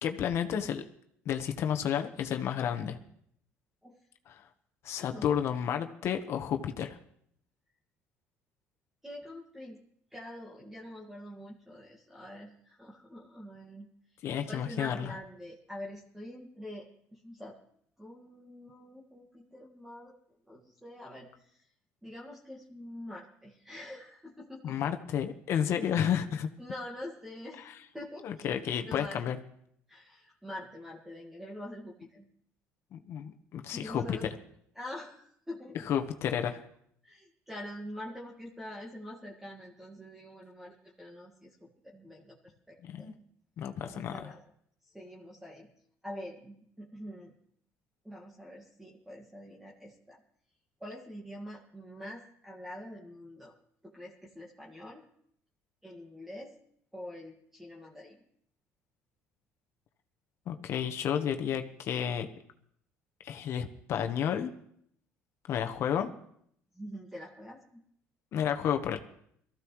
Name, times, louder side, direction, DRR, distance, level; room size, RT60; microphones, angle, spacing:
voice 1, 0.0-0.8 1.2-3.0 4.3-4.4 4.8-7.0 14.2-15.1 24.6-26.5 28.2-29.4 32.9-34.2 35.9-36.6 42.8-43.1 43.6-44.2 60.5-62.3 63.2-64.5 65.5-66.1 68.3-69.0, left 9 dB, 55° left, 6 dB, 1.1 m, -31 dB
voice 2, 4.9-5.2 9.0-9.8 10.1-17.6 18.0-20.1 20.4-21.7 22.0-24.9 26.6-27.7 27.9-28.5 28.8-29.2 29.9-32.3 33.7-34.3 34.7-35.9 37.0-43.2 43.8-44.4 44.8-45.7 46.0-47.3 48.0-50.2 50.8-53.5 53.8-55.0 55.8-56.5 56.9-58.2 66.7-67.8, left 1 dB, 5° right, -2 dB, 1.8 m, -45 dB
22.5 x 14.5 x 3.1 m, 0.69 s
cardioid pair, 130°, 5 cm